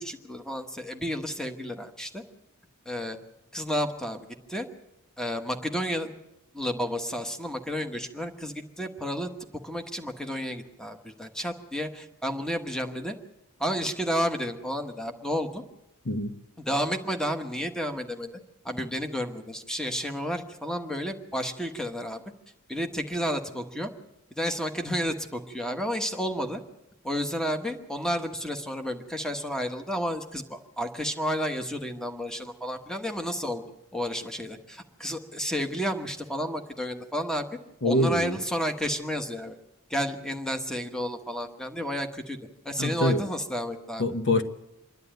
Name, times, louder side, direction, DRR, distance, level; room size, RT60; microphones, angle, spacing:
voice 1, 0.0-2.2 2.8-3.2 3.5-4.2 4.5-4.7 5.2-6.1 6.5-9.3 9.6-13.1 13.6-15.6 16.6-18.3 18.6-22.2 22.7-23.9 24.4-26.6 27.0-33.6 33.9-37.5 37.8-39.6 39.9-42.4 42.6-44.0, equal, 5° left, 1.3 m, -31 dB
voice 2, 37.8-38.4 42.8-43.2 44.0-44.4, left 1 dB, 55° left, 1.1 m, -24 dB
26.5 x 11.0 x 9.2 m
head